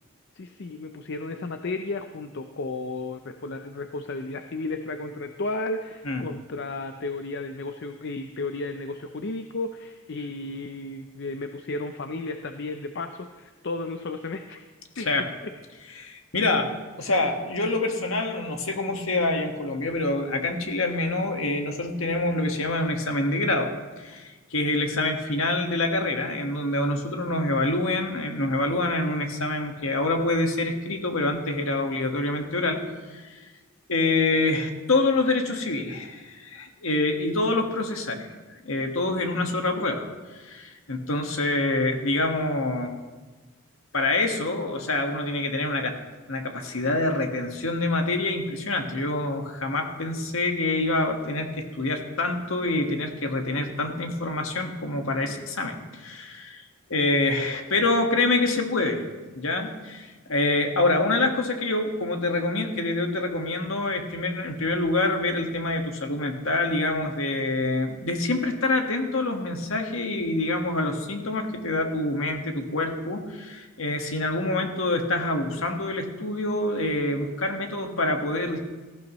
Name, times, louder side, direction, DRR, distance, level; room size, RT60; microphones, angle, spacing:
voice 1, 0.3-14.6 15.0-15.1 15.4-15.5, left 2 dB, 55° left, 7 dB, 0.6 m, -33 dB
voice 2, 14.9-15.3 16.0-16.7 17.0-23.7 24.0-32.8 33.1-33.4 33.9-38.3 38.6-40.0 40.3-42.9 43.9-45.9 46.3-56.6 56.9-59.0 59.4-78.6, left 2 dB, 70° left, 3 dB, 1.7 m, -26 dB
18.5 x 14.5 x 3.1 m, 1.3 s
head